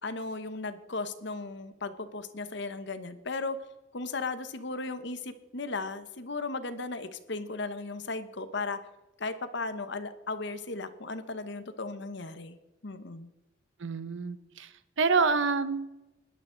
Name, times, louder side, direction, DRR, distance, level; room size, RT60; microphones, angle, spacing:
voice 1, 0.0-3.6 3.9-8.8 9.2-12.6 12.8-13.3, left 3 dB, 60° left, 11 dB, 1.1 m, -36 dB
voice 2, 13.8-15.9, right 4 dB, 70° right, 13 dB, 0.8 m, -28 dB
17.5 x 11.5 x 3.9 m, 1.0 s
head